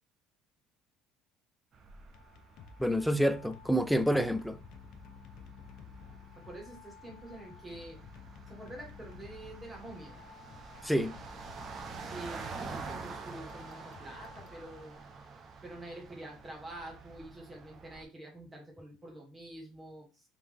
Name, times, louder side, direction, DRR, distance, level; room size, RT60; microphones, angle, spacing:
sound 1, 1.7-18.0, right 4 dB, 35° right, 0.7 m, -48 dB
sound 2, 2.1-15.2, left 6 dB, 60° left, 0.7 m, -52 dB
voice 1, 2.8-4.6 10.8-11.1, equal, ahead, 0.4 m, -28 dB
voice 2, 6.4-8.0 8.5-10.2 10.8-10.9 12.1-15.0 15.6-20.2, right 1 dB, 15° right, 1.8 m, -47 dB
3.8 x 3.0 x 3.4 m
cardioid pair, 120°, 0 cm